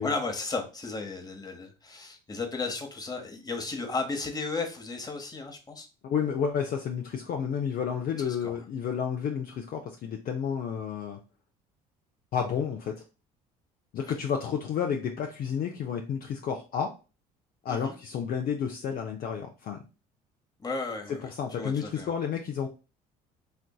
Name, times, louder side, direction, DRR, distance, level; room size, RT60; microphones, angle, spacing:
voice 1, 0.0-5.9 8.2-8.6 14.1-14.2 17.7-17.9 20.6-22.1, left 3 dB, 20° left, 4 dB, 1.0 m, -34 dB
voice 2, 6.0-11.2 12.3-12.9 13.9-16.9 17.6-19.8 21.3-22.7, left 7 dB, 50° left, 2 dB, 0.5 m, -31 dB
4.3 x 2.6 x 2.3 m, 0.32 s
hypercardioid pair, 65°, 20 cm